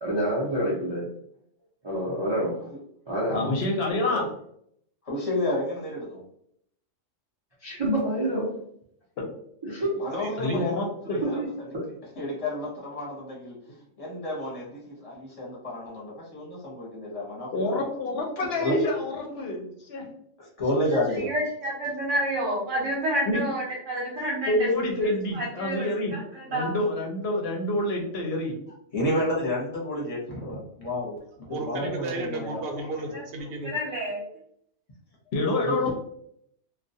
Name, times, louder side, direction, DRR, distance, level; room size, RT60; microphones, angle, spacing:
voice 1, 0.0-1.1 1.8-2.6 3.1-3.4 7.6-8.5 9.7-10.0 11.2-11.5, right 1 dB, 40° right, -6 dB, 0.4 m, -27 dB
voice 2, 3.3-4.2 9.2-9.3 10.4-11.2 17.5-20.1 23.3-23.4 24.5-26.1 26.4-28.5 35.3-35.9, left 2 dB, 65° left, 0 dB, 0.7 m, -27 dB
voice 3, 5.0-6.2 9.9-10.7 11.0-11.5 12.2-13.6 14.0-18.2 18.6-18.7 20.4-21.3 24.2-24.3 28.9-32.6 35.6-35.7, left 1 dB, 35° left, -4 dB, 0.8 m, -31 dB
voice 4, 10.1-10.6 31.5-33.7, right 3 dB, 60° right, 2 dB, 0.7 m, -34 dB
voice 5, 21.1-24.7 25.0-26.8 33.1-33.2 33.7-34.2, right 1 dB, 85° right, -3 dB, 1.0 m, -29 dB
2.3 x 2.1 x 2.6 m, 0.70 s
omnidirectional pair, 1.3 m